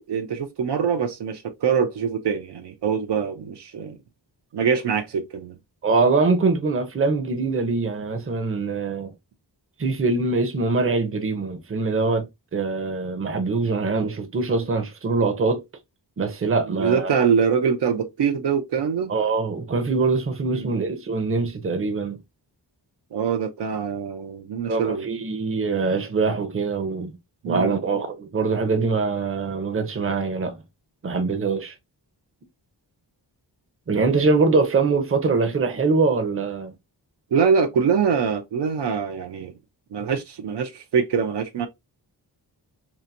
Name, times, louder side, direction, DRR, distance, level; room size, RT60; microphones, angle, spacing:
voice 1, 0.0-4.0 4.5-5.6 16.7-19.1 20.5-20.7 23.1-25.1 27.4-27.7 37.3-39.5 39.9-41.7, right 6 dB, 75° right, 0.5 m, -24 dB
voice 2, 5.8-9.1 9.8-12.2 12.5-15.6 16.2-17.2 19.1-22.2 24.7-27.2 27.4-30.6 31.0-31.7 33.9-36.7, right 4 dB, 30° right, 0.6 m, -23 dB
2.8 x 2.5 x 2.5 m
wide cardioid pair, 110°, 42 cm